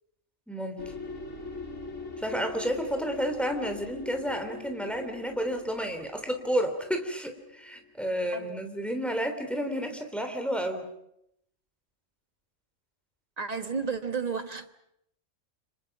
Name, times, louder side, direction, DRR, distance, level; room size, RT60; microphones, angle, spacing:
voice 1, 0.5-0.9 2.2-10.9, equal, ahead, 3.3 m, -31 dB
sound 1, 0.8-7.9, left 3 dB, 90° left, 3.0 m, -42 dB
voice 2, 13.4-14.7, right 5 dB, 30° right, 1.4 m, -32 dB
30.0 x 26.5 x 6.0 m
omnidirectional pair, 1.3 m